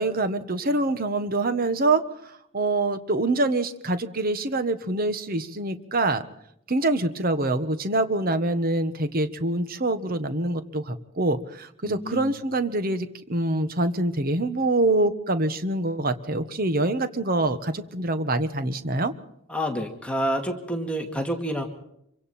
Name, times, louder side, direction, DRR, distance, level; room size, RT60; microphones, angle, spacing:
voice 1, 0.0-6.2 6.7-19.1, right 2 dB, 45° right, 11 dB, 1.3 m, -25 dB
voice 2, 11.8-12.3 19.5-21.6, equal, 5° left, 3 dB, 2.2 m, -28 dB
26.0 x 24.5 x 4.4 m, 0.75 s
head